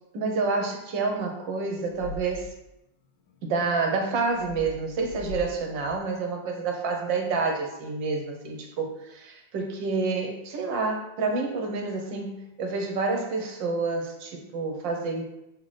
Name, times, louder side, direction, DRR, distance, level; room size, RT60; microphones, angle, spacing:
voice 1, 0.1-2.5 3.4-15.2, right 4 dB, 70° right, 3 dB, 1.6 m, -28 dB
sound 1, 1.9-2.5 4.3-5.5 5.8-6.0, left 3 dB, 70° left, 1.2 m, -39 dB
5.6 x 5.6 x 3.3 m, 0.88 s
omnidirectional pair, 2.2 m